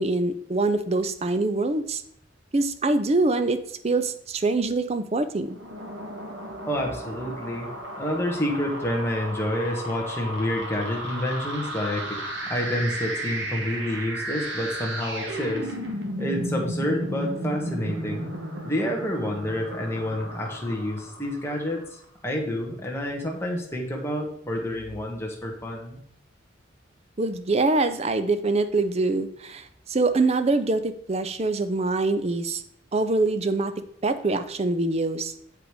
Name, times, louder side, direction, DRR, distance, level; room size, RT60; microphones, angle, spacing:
voice 1, 0.0-2.0 2.5-5.6 27.2-32.6 32.9-33.7 34.0-35.3, right 3 dB, 30° right, 10 dB, 0.5 m, -24 dB
sound 1, 5.4-21.8, equal, 65° right, 1.7 m, -34 dB
voice 2, 6.7-7.7 8.0-15.7 16.2-18.3 18.6-21.8 22.2-26.0, left 1 dB, 15° left, 0 dB, 1.3 m, -28 dB
7.7 x 5.0 x 4.8 m, 0.68 s
head